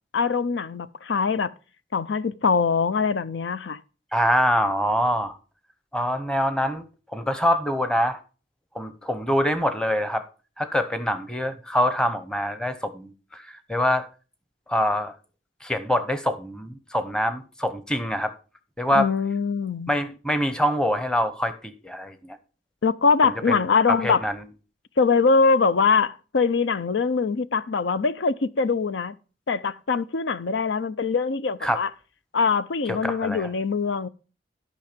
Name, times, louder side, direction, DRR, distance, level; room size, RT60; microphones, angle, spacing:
voice 1, 0.1-1.5 1.9-3.8 18.9-19.9 22.8-24.3 25.0-29.1 29.5-31.9 32.3-34.1, left 4 dB, 80° left, 0.5 m, -23 dB
voice 2, 4.1-5.4 5.9-6.8 7.1-8.2 8.7-10.3 10.6-14.1 14.7-15.1 15.6-18.3 18.8-19.1 19.9-22.4 23.2-23.6 23.9-24.4 31.6-31.8 32.9-33.5, equal, 5° left, 0.8 m, -25 dB
12.0 x 5.8 x 5.1 m
head